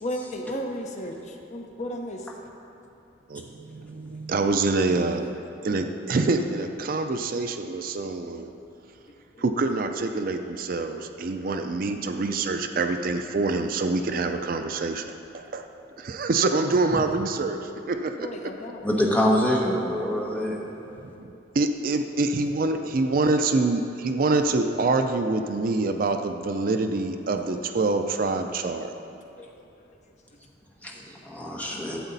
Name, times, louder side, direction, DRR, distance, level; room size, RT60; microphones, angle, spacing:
voice 1, 0.0-2.3 9.3-9.4 11.4-11.6 11.9-12.3 12.6-12.7 18.2-19.2 20.9-21.4 29.4-29.5 29.8-29.9 31.7-31.9, equal, 40° left, 2 dB, 0.8 m, -36 dB
voice 2, 3.3-5.4 5.6-8.5 9.4-15.7 16.0-18.3 21.2-28.9, right 3 dB, 50° right, 7 dB, 0.4 m, -26 dB
voice 3, 18.8-20.6 30.8-32.0, equal, 10° left, -3 dB, 1.1 m, -25 dB
12.5 x 7.9 x 4.0 m, 2.7 s
head